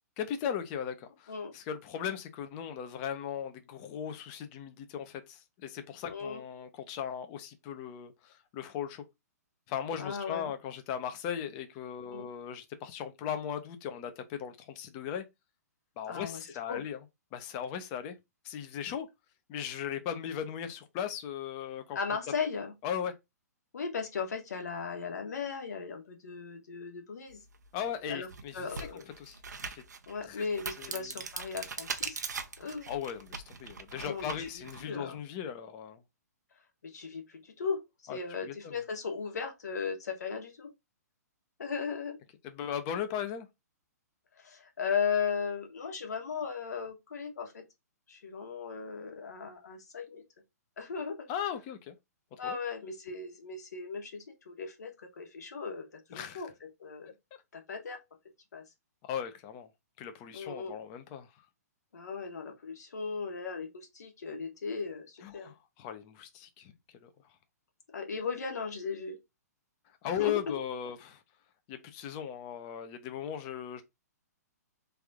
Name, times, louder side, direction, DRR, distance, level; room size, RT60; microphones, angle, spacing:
voice 1, 0.2-9.0 9.7-15.2 16.0-17.0 17.3-18.2 18.4-19.1 19.5-22.0 22.8-23.1 27.7-28.7 29.2-29.8 30.3-30.4 30.8-31.1 32.2-32.4 32.9-36.0 38.1-38.2 38.4-38.8 42.4-43.5 51.3-51.9 52.4-52.6 56.1-56.4 59.0-59.7 60.0-61.3 65.2-66.7 67.0-67.1 70.0-71.2 71.7-73.8, left 9 dB, 35° left, 0.8 m, -37 dB
voice 2, 6.1-6.4 10.0-10.5 12.1-12.3 16.1-16.8 21.9-22.7 23.7-27.4 28.1-28.3 28.5-29.0 30.1-32.2 32.6-32.9 33.9-35.2 36.8-40.7 41.6-42.1 44.4-47.6 48.1-50.2 50.8-51.3 52.4-54.9 55.2-56.5 56.8-57.1 57.5-58.0 58.5-58.6 60.3-60.7 61.9-65.5 67.9-69.2 70.0-70.6, left 5 dB, 70° left, 1.4 m, -37 dB
sound 1, 27.5-27.7 28.2-34.8, right 5 dB, 80° right, 0.7 m, -41 dB
3.4 x 2.7 x 3.5 m
hypercardioid pair, 125°, 9 cm